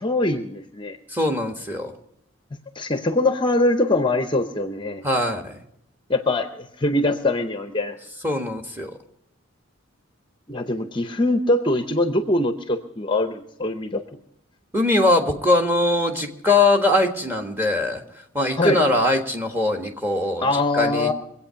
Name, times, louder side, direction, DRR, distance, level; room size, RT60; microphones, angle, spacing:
voice 1, 0.0-1.0 2.7-5.0 6.1-8.0 10.5-14.0 18.6-18.8 20.4-21.1, left 2 dB, 25° left, 7 dB, 0.7 m, -23 dB
voice 2, 1.1-1.9 5.0-5.6 8.2-8.9 14.7-18.0 18.3-20.5 20.7-21.1, left 2 dB, 10° right, 4 dB, 1.4 m, -21 dB
23.5 x 8.5 x 5.7 m, 0.78 s
head